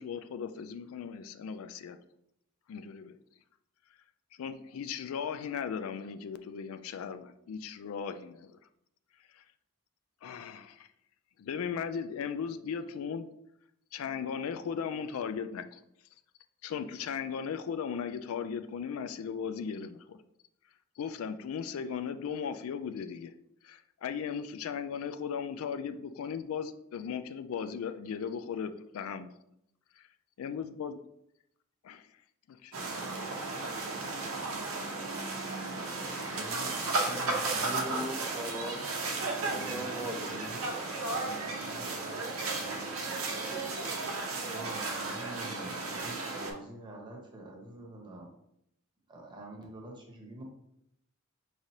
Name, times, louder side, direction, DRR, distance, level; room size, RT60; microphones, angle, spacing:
voice 1, 0.0-2.0 2.7-3.2 4.4-8.6 9.3-9.4 10.2-10.9 11.4-13.3 13.9-15.8 16.6-20.2 21.0-23.3 23.6-29.3 30.4-31.0 31.8-32.0 32.5-32.7, left 7 dB, 85° left, 9 dB, 0.3 m, -37 dB
sound 1, 32.7-46.5, right 3 dB, 90° right, 0.8 m, -34 dB
voice 2, 35.8-37.9 39.4-40.6 41.1-42.3 44.5-48.3 49.1-50.4, right 1 dB, 25° right, -1 dB, 0.9 m, -46 dB
voice 3, 37.7-38.8 39.5-41.1, left 1 dB, ahead, 2 dB, 0.5 m, -40 dB
5.0 x 3.1 x 2.7 m, 0.77 s
head